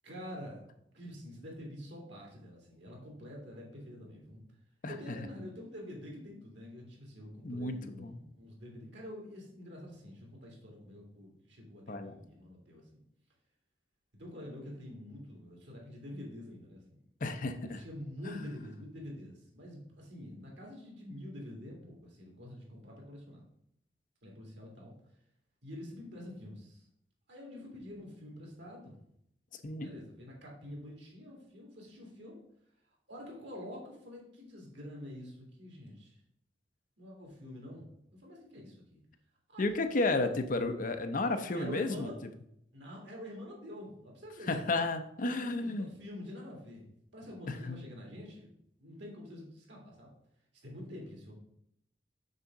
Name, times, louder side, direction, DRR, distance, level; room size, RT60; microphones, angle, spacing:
voice 1, 0.0-0.7 0.9-4.4 4.9-13.0 14.2-17.0 17.6-23.4 24.2-24.9 25.6-26.8 27.3-29.0 29.8-32.4 33.1-36.2 37.0-37.9 38.2-39.0 39.5-39.8 41.5-42.2 42.7-44.6 45.3-48.5 48.8-50.1 50.6-51.3, left 1 dB, 90° right, -1 dB, 2.5 m, -46 dB
voice 2, 4.8-5.3 7.4-8.1 11.9-12.1 17.2-17.8 29.6-29.9 39.6-42.1 44.5-45.9 47.5-47.8, left 2 dB, 50° left, 7 dB, 0.7 m, -32 dB
6.7 x 3.6 x 5.9 m, 0.75 s
head